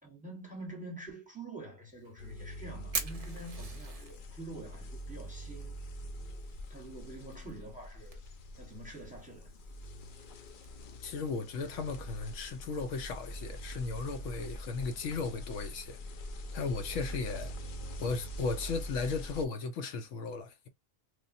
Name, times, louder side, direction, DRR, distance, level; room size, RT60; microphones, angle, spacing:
voice 1, 0.0-5.7 6.7-8.2 8.5-9.5, right 2 dB, 5° right, 0.9 m, -46 dB
Fire, 1.9-13.4, right 4 dB, 55° right, 0.4 m, -47 dB
sound 1, 2.2-19.5, equal, 60° left, 0.6 m, -44 dB
voice 2, 11.0-16.0 16.5-17.5 18.0-20.7, left 4 dB, 75° left, 0.9 m, -36 dB
3.4 x 2.2 x 2.5 m
omnidirectional pair, 1.3 m